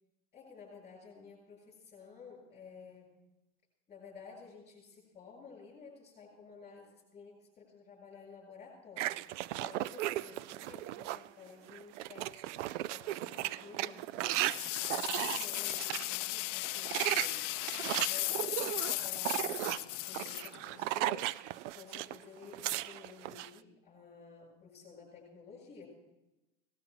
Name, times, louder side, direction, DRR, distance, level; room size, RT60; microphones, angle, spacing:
voice 1, 0.3-3.1 3.9-9.2 9.6-14.5 14.8-17.5 18.1-21.4 21.7-25.9, left 5 dB, 20° left, -3 dB, 7.2 m, -53 dB
sound 1, 9.0-11.3 11.7-16.1 16.6-22.2 22.4-23.5, right 15 dB, 75° right, 0.6 m, -36 dB
sound 2, 14.3-21.0, left 20 dB, 85° left, 0.5 m, -36 dB
18.5 x 13.0 x 4.5 m, 0.97 s
supercardioid pair, 130°, 36 cm